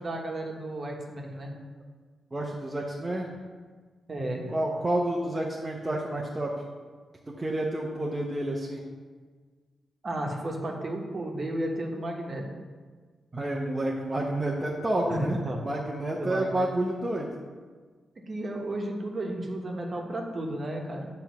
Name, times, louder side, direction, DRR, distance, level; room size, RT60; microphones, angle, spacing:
voice 1, 0.0-1.5 4.1-4.5 10.0-12.5 15.1-15.6 16.2-16.7 18.3-21.1, right 1 dB, 45° right, 0 dB, 1.3 m, -33 dB
voice 2, 2.3-3.3 4.5-6.6 7.4-8.8 13.3-17.3, right 1 dB, 25° right, -2 dB, 0.9 m, -29 dB
7.4 x 3.4 x 5.9 m, 1.5 s
cardioid pair, 65°, 0 cm